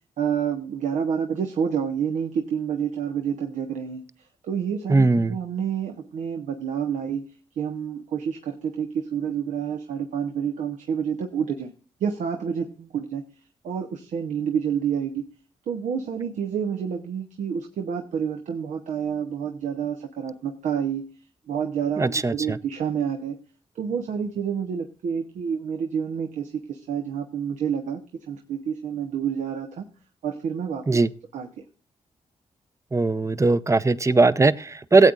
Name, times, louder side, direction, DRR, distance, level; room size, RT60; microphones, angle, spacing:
voice 1, 0.2-4.0 4.4-7.2 7.6-11.7 12.0-13.2 13.6-15.3 15.7-21.0 21.5-23.4 23.7-29.9 30.2-30.8 31.3-31.5, right 7 dB, 75° right, 4 dB, 0.8 m, -28 dB
voice 2, 4.9-5.4 22.0-22.6 30.9-31.1 32.9-35.1, right 3 dB, 25° right, 15 dB, 0.6 m, -19 dB
17.0 x 8.1 x 2.4 m, 0.39 s
supercardioid pair, 40°, 13 cm